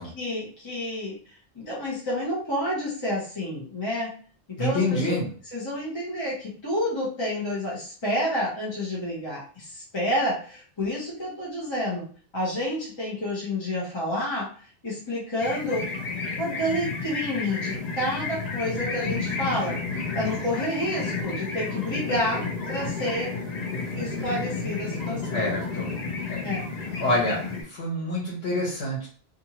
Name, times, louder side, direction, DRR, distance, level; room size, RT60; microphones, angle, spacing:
voice 1, 0.2-1.2 1.7-4.1 4.6-5.1 5.5-12.0 12.3-14.5 14.8-15.8 16.4-19.8 20.1-22.4 22.7-23.3 24.0-25.5 26.4-26.6, left 1 dB, 25° left, -6 dB, 0.9 m, -29 dB
voice 2, 4.6-5.3 25.3-25.9 26.3-26.4 27.0-29.1, left 1 dB, 85° left, -5 dB, 1.2 m, -27 dB
sound 1, 15.4-27.6, left 4 dB, 45° left, 0.7 m, -31 dB
2.6 x 2.5 x 2.9 m, 0.43 s
omnidirectional pair, 1.1 m